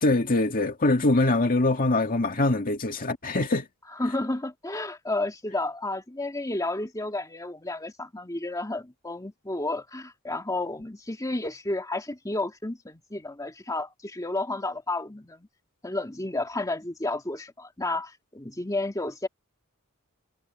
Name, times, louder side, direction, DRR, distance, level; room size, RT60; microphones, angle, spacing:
voice 1, 0.0-3.7, left 2 dB, 40° left, 2.0 m, -23 dB
voice 2, 4.0-15.5 15.8-19.3, left 2 dB, 15° left, 2.0 m, -31 dB
head